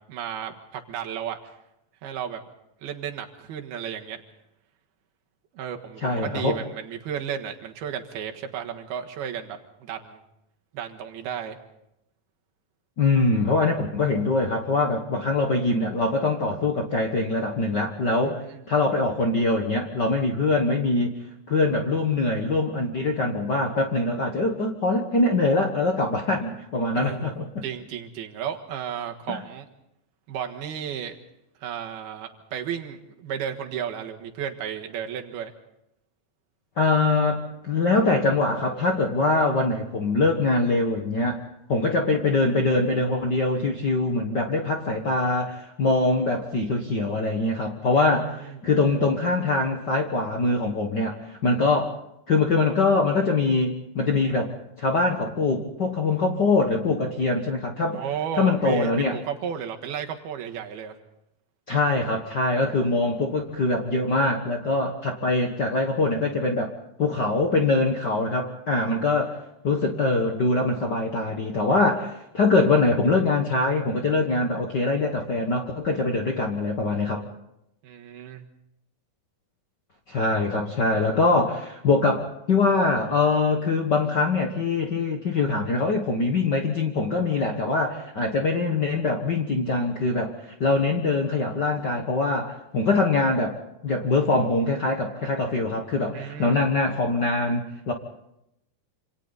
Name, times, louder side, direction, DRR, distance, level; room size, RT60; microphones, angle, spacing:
voice 1, 0.1-1.4 2.0-2.4 2.8-4.2 5.5-10.2 10.7-11.6 18.2-18.9 27.0-29.7 30.3-31.2 31.6-35.5 48.4-48.6 57.9-61.0 77.8-78.5 96.1-96.6, right 8 dB, 85° right, 4 dB, 3.5 m, -33 dB
voice 2, 6.0-6.6 13.0-21.1 21.5-27.6 29.3-29.4 36.8-41.4 41.7-52.0 52.3-58.0 58.4-59.1 61.7-66.7 67.0-69.4 69.6-77.2 80.1-93.5 93.8-97.9, left 3 dB, 80° left, 2 dB, 0.9 m, -23 dB
27.0 x 27.0 x 4.1 m, 0.82 s
omnidirectional pair, 4.3 m